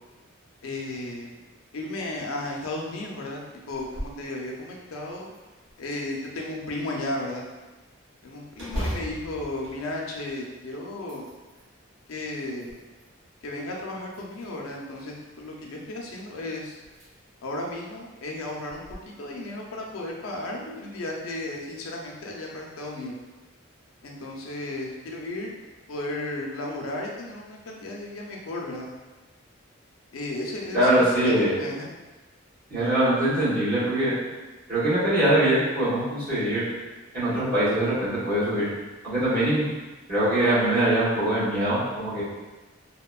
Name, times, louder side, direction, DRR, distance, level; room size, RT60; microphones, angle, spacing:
voice 1, 0.6-1.4 1.7-3.4 3.7-5.3 5.8-7.4 8.2-11.3 12.1-12.8 13.4-16.8 17.4-18.8 19.2-23.1 24.0-25.6 25.9-28.9 30.1-31.9, left 2 dB, 90° left, -1 dB, 0.5 m, -34 dB
sound 1, 3.7-4.2 4.7-4.8 5.3-6.1 8.5-10.5 10.9-11.7 12.3-13.2 14.1-14.7 16.2-16.3 16.8-17.1 17.5-17.6 18.7-19.0, equal, 90° right, 0.9 m, -37 dB
voice 2, 30.7-31.5 32.7-34.1 34.7-36.7 37.1-38.7 39.0-39.7 40.1-42.2, right 1 dB, 45° right, -11 dB, 1.1 m, -22 dB
2.8 x 2.1 x 2.3 m, 1.2 s
head